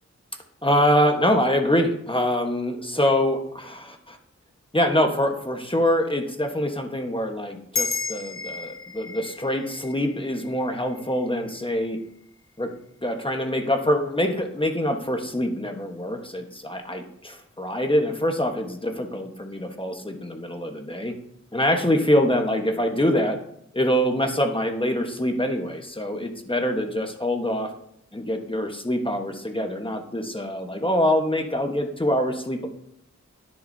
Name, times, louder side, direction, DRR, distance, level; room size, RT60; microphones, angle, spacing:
voice 1, 0.6-4.2 4.7-12.0 12.6-12.7 13.0-21.1 21.5-23.4 23.7-27.7 28.1-32.7, equal, 20° left, 4 dB, 1.2 m, -24 dB
sound 1, 7.7-12.5, left 4 dB, 50° left, 0.6 m, -34 dB
10.5 x 9.9 x 2.7 m, 0.72 s
wide cardioid pair, 65°, 29 cm